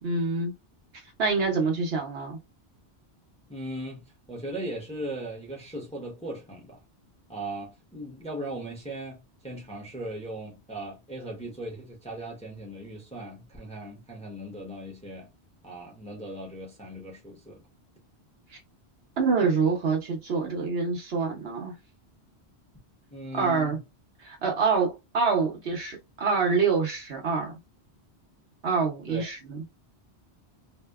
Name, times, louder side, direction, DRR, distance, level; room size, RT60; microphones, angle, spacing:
voice 1, 0.0-0.5 1.2-2.4 19.2-21.7 23.4-23.8 24.2-27.5 28.6-29.6, right 4 dB, 70° right, 1.0 m, -26 dB
voice 2, 3.5-6.8 7.3-15.3 15.6-17.6 23.1-23.8 29.1-29.2, right 1 dB, 5° left, 0.7 m, -38 dB
2.7 x 2.1 x 2.3 m
omnidirectional pair, 1.1 m